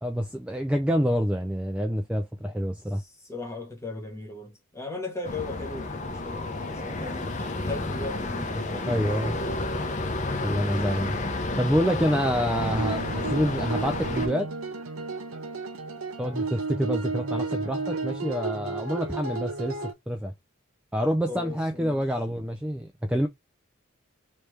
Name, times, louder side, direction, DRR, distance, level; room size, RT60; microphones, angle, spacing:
voice 1, 0.0-3.0 8.9-9.4 10.4-11.2 11.6-14.5 16.2-20.3 20.9-23.3, equal, 5° right, 0.3 m, -27 dB
voice 2, 2.9-7.3 7.6-9.2 21.3-22.0, left 3 dB, 15° left, 1.2 m, -38 dB
sound 1, 5.2-14.3, left 2 dB, 35° left, 0.7 m, -31 dB
sound 2, 12.5-19.9, right 3 dB, 85° right, 0.9 m, -33 dB
3.2 x 2.9 x 3.2 m
head